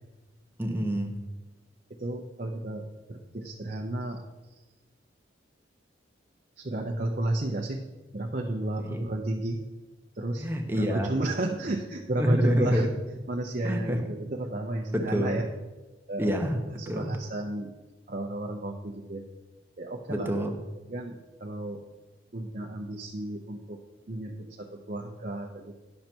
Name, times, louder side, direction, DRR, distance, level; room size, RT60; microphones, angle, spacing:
voice 1, 0.6-1.2 8.9-9.1 10.4-11.1 12.2-12.9 13.6-14.1 14.9-15.4 16.2-17.2 20.1-20.6, equal, 10° right, 3 dB, 0.8 m, -27 dB
voice 2, 2.0-4.2 6.6-7.8 8.1-9.6 10.2-10.5 10.7-12.9 13.3-15.4 16.1-16.3 16.8-17.7 18.1-19.2 19.8-20.4 20.9-21.8 22.3-23.8 24.1-25.8, right 1 dB, 45° right, 0 dB, 0.7 m, -33 dB
10.5 x 6.5 x 4.4 m, 1.1 s
head